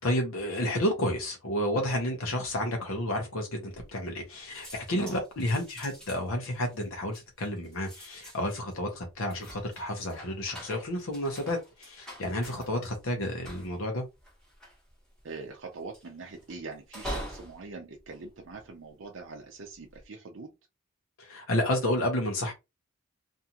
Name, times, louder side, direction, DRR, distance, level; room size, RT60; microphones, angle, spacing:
voice 1, 0.0-14.0 21.2-22.5, left 1 dB, 75° left, 0.8 m, -31 dB
sound 1, 3.7-4.3 4.5-19.1 19.6-20.0, equal, 5° left, 0.9 m, -46 dB
voice 2, 15.2-20.5, right 4 dB, 60° right, 0.5 m, -43 dB
2.6 x 2.4 x 2.8 m
head